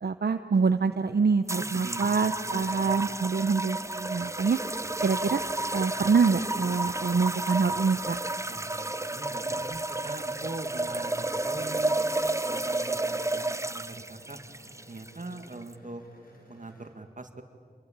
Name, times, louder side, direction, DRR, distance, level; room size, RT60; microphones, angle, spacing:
voice 1, 0.0-4.6 5.0-5.4 5.7-8.2, right 5 dB, 70° right, 9 dB, 0.8 m, -25 dB
sound 1, 1.5-15.7, right 2 dB, 15° right, 0.7 m, -31 dB
voice 2, 1.5-3.0 8.5-11.9 12.4-14.4 14.9-16.0 16.5-17.4, right 2 dB, 50° right, 6 dB, 2.2 m, -42 dB
sound 2, 4.8-16.9, right 1 dB, 60° left, 6.8 m, -54 dB
27.5 x 21.5 x 8.9 m, 2.2 s
wide cardioid pair, 65°, 17 cm